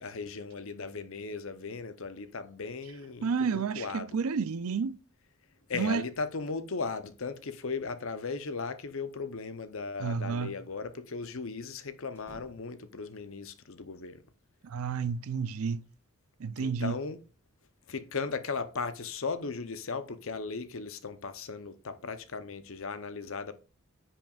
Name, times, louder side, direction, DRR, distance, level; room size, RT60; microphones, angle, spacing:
voice 1, 0.0-4.1 5.7-14.2 16.6-17.2 17.9-23.5, left 4 dB, 60° left, 0.7 m, -37 dB
voice 2, 3.2-5.0 5.7-6.0 10.0-10.6 14.6-15.9 16.4-17.0, right 5 dB, 70° right, 0.4 m, -31 dB
sound 1, 9.1-9.8 10.1-10.2 12.1-13.0 14.5-15.5, right 2 dB, 10° left, 2.4 m, -58 dB
10.5 x 5.7 x 2.4 m
head